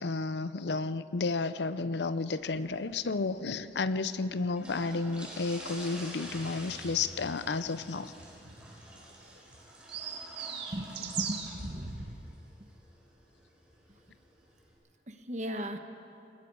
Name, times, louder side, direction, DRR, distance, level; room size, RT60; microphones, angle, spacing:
voice 1, 0.0-8.1, left 3 dB, 75° left, 14 dB, 0.6 m, -32 dB
sound 1, 2.3-14.7, right 1 dB, 5° right, 4.8 m, -49 dB
sound 2, 5.9-11.6, right 7 dB, 70° right, 1.8 m, -42 dB
voice 2, 10.7-12.2 15.1-15.8, right 1 dB, 40° right, 6 dB, 1.2 m, -37 dB
29.0 x 19.5 x 4.8 m, 2.8 s
head